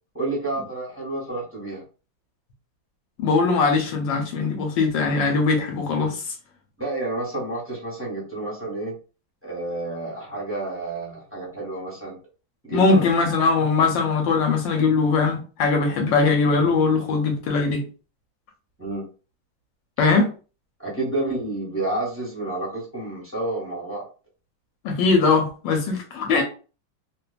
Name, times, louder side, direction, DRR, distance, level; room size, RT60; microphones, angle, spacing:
voice 1, 0.1-1.8 6.8-8.9 9.4-12.2 12.6-13.0 18.8-19.1 20.8-24.0, right 2 dB, 10° right, 0.6 m, -30 dB
voice 2, 3.2-6.3 12.7-17.8 20.0-20.3 24.8-26.4, left 4 dB, 80° left, 1.2 m, -21 dB
3.0 x 2.2 x 2.3 m
omnidirectional pair, 2.1 m